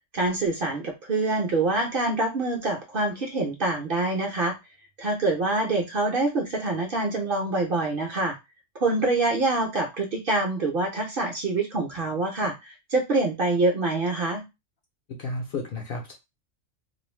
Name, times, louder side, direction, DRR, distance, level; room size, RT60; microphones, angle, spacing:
voice 1, 0.1-4.5 5.0-8.4 8.8-14.4, right 2 dB, 55° right, 1 dB, 0.7 m, -25 dB
voice 2, 15.1-16.1, left 2 dB, 60° left, 2 dB, 0.7 m, -32 dB
2.4 x 2.0 x 3.1 m, 0.23 s
omnidirectional pair, 1.3 m